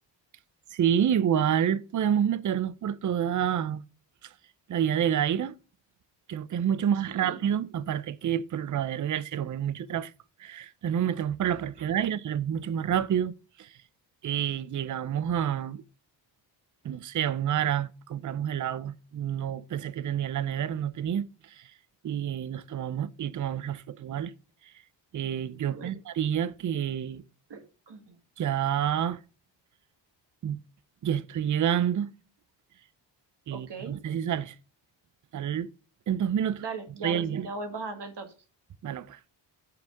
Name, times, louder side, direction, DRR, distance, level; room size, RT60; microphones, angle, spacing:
voice 1, 0.7-3.8 4.7-5.5 6.3-10.1 10.4-13.3 13.6-13.7 14.2-15.8 16.8-21.3 21.5-21.6 22.0-24.3 25.1-27.2 28.4-29.2 30.4-30.6 31.0-32.1 33.5-34.6 35.3-35.7 36.1-36.6 37.0-37.5 38.8-39.3, right 9 dB, 40° right, 0.5 m, -28 dB
voice 2, 25.6-26.0 27.5-28.2 33.5-34.0 36.6-38.3, right 3 dB, 60° right, 1.8 m, -39 dB
7.7 x 3.6 x 6.3 m
cardioid pair, 75°, 46 cm